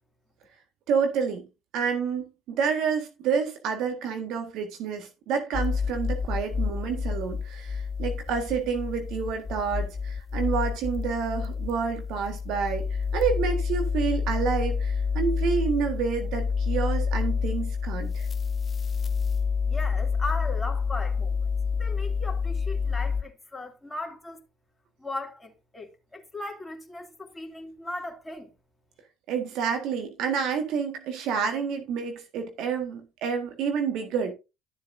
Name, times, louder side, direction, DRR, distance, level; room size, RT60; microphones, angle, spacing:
voice 1, 0.9-1.4 1.7-12.8 13.1-18.3 29.3-34.3, right 6 dB, 65° right, 1.7 m, -29 dB
sound 1, 5.5-23.2, left 5 dB, 40° left, 0.7 m, -28 dB
voice 2, 19.7-21.3 21.8-24.4 25.0-28.5, left 2 dB, 15° left, 2.9 m, -37 dB
13.0 x 7.4 x 2.7 m
hypercardioid pair, 60°, 0 cm